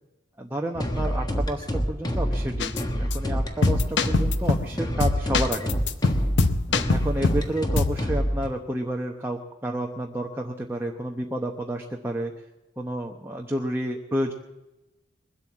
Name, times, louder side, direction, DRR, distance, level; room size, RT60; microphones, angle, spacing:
voice 1, 0.4-5.7 6.9-12.3 12.8-14.3, right 1 dB, 15° right, 1 dB, 0.9 m, -30 dB
sound 1, 0.7-8.5, equal, 20° left, 1.4 m, -27 dB
sound 2, 2.6-2.8 3.1-3.2 3.6-4.7 5.0-7.5 7.8-8.0, left 3 dB, 70° left, 0.7 m, -23 dB
21.0 x 8.4 x 7.2 m, 1.0 s
head